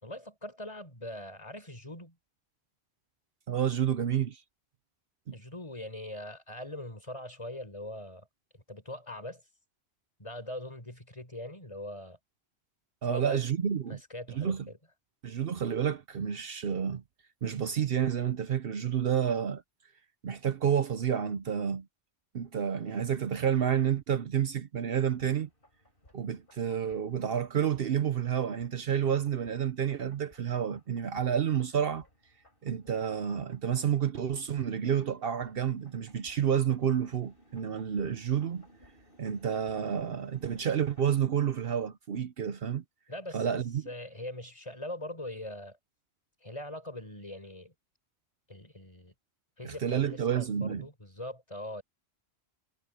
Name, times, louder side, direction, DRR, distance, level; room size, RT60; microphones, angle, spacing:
voice 1, 0.0-2.2 5.3-8.3 8.5-9.4 10.2-12.2 13.0-13.5 13.9-14.8 43.1-45.8 46.4-47.7 48.5-49.1 49.6-51.8, left 1 dB, 30° left, 4.4 m, -42 dB
voice 2, 3.5-4.4 5.3-5.4 13.0-14.0 14.3-14.7 15.2-17.0 17.4-19.6 20.2-21.9 22.3-25.5 26.1-32.0 32.6-38.7 39.2-42.8 43.3-43.9 49.6-50.9, right 8 dB, 65° right, 1.0 m, -30 dB
sound 1, 25.0-41.0, equal, 55° left, 5.7 m, -62 dB
omnidirectional pair, 1.1 m